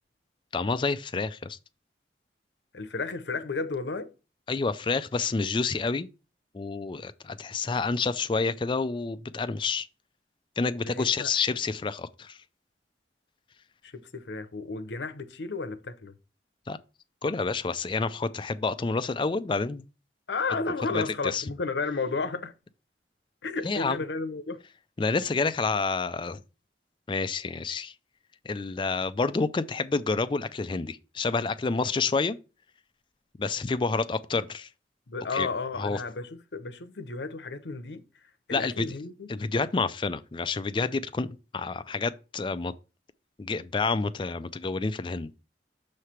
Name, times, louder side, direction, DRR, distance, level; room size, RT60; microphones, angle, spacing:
voice 1, 0.5-1.6 4.5-6.1 6.5-9.9 10.6-12.4 16.7-16.8 17.2-19.8 20.9-21.4 23.6-24.0 25.0-26.4 27.1-27.9 28.4-32.4 33.4-34.7 35.3-35.5 35.8-36.0 38.5-38.9 39.3-41.3 41.5-42.7 43.4-45.4, left 4 dB, 30° left, 0.4 m, -28 dB
voice 2, 2.7-4.1 10.8-11.3 13.8-16.1 20.3-22.5 23.4-24.6 35.1-38.0 38.5-39.4, left 4 dB, 80° left, 0.8 m, -33 dB
6.6 x 3.2 x 5.7 m
head